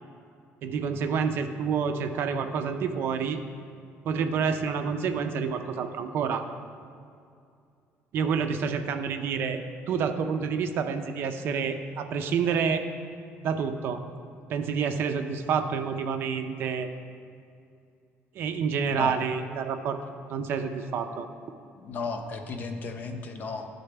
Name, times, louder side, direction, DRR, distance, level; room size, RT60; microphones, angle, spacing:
voice 1, 0.6-3.4 4.0-6.5 8.1-12.9 13.4-14.0 14.5-16.9 18.3-20.0 20.3-21.3, right 6 dB, 55° right, 7 dB, 0.4 m, -28 dB
voice 2, 21.8-23.7, left 4 dB, 40° left, 5 dB, 0.5 m, -34 dB
11.5 x 3.9 x 3.3 m, 2.4 s
cardioid pair, 150°, 4 cm